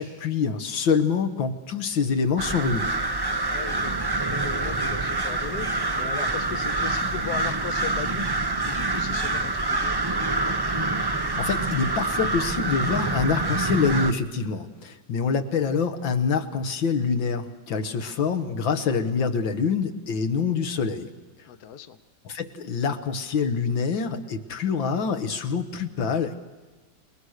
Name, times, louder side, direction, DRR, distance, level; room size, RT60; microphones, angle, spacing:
voice 1, 0.0-2.9 11.4-21.1 22.3-26.4, left 5 dB, 80° left, 8 dB, 2.2 m, -26 dB
sound 1, 2.4-14.1, right 2 dB, 35° right, 0.4 m, -26 dB
voice 2, 3.5-5.7 5.9-8.3 8.7-9.9 21.5-22.0, left 8 dB, 60° left, 11 dB, 1.4 m, -37 dB
29.0 x 20.0 x 6.5 m, 1.3 s
omnidirectional pair, 2.1 m